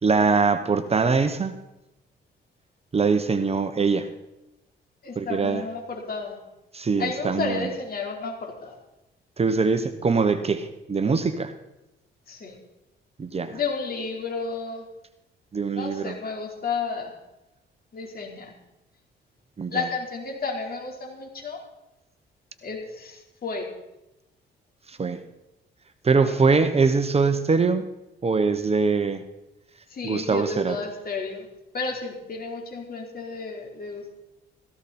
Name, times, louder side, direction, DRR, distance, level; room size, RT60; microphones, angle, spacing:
voice 1, 0.0-1.5 2.9-4.1 5.2-5.6 6.7-7.7 9.4-11.5 13.2-13.6 15.5-16.1 19.6-19.8 24.9-25.2 26.0-27.9 28.2-29.2 30.0-30.8, right 4 dB, 30° right, 9 dB, 1.1 m, -23 dB
voice 2, 5.0-6.4 7.0-8.8 12.3-12.6 13.5-14.9 15.7-17.1 17.9-18.5 19.7-21.6 22.6-23.7 26.2-26.4 29.9-31.5 31.7-34.2, left 4 dB, 50° left, 0 dB, 4.2 m, -32 dB
16.5 x 15.0 x 4.4 m, 0.94 s
cardioid pair, 90°, 20 cm